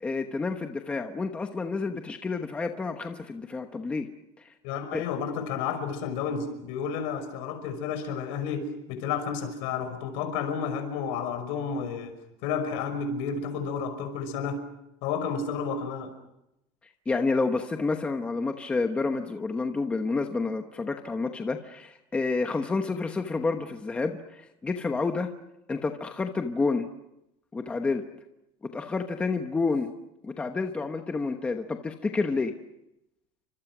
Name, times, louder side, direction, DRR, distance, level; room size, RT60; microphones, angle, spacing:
voice 1, 0.0-4.1 4.4-4.5 4.9-5.0 17.1-25.3 25.7-26.8 27.5-28.0 28.7-29.9 30.2-32.5, left 3 dB, 10° left, 5 dB, 1.1 m, -29 dB
voice 2, 4.6-12.1 12.4-14.6 15.0-16.1, left 6 dB, 60° left, 9 dB, 5.8 m, -31 dB
30.0 x 25.5 x 6.1 m, 0.86 s
cardioid pair, 175°, 12 cm